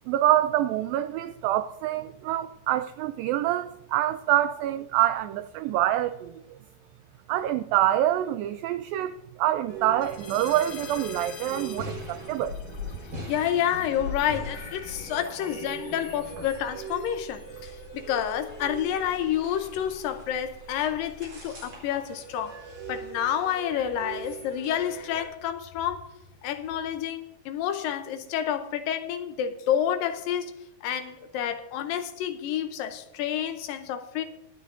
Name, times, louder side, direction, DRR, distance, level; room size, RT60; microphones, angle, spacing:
voice 1, 0.1-6.4 7.3-12.5, right 13 dB, 85° right, 2.0 m, -26 dB
sound 1, 9.7-25.3, right 1 dB, 30° right, 5.0 m, -40 dB
sound 2, 10.0-27.0, left 4 dB, 60° left, 3.2 m, -48 dB
voice 2, 13.3-22.6 22.9-26.1 26.4-30.5 30.8-34.2, left 10 dB, 75° left, 2.2 m, -29 dB
24.0 x 9.2 x 2.6 m
omnidirectional pair, 4.5 m